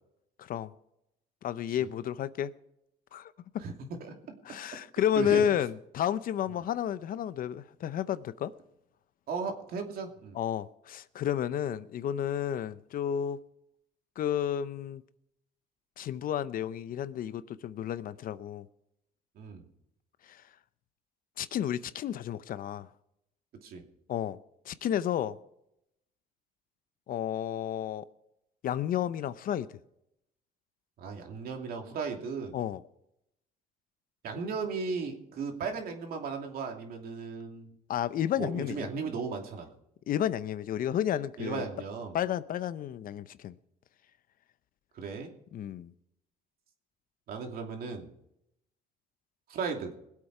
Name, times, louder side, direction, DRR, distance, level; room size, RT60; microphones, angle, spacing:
voice 1, 0.4-0.7 1.4-2.5 3.1-3.6 4.4-8.5 10.3-13.4 14.2-15.0 16.0-18.7 20.2-20.4 21.4-22.9 24.1-24.4 24.7-25.4 27.1-28.1 28.6-29.7 32.5-32.8 37.9-38.9 40.1-41.6 42.1-43.5 45.5-45.9, left 10 dB, 55° left, 0.7 m, -31 dB
voice 2, 3.6-4.1 5.2-5.4 9.3-10.4 19.4-19.7 23.6-23.8 31.0-32.6 34.2-37.7 38.4-39.7 41.4-42.1 44.9-45.3 47.3-48.1 49.5-49.9, right 5 dB, 65° right, 2.7 m, -36 dB
21.0 x 8.2 x 4.8 m
cardioid pair, 110°, 17 cm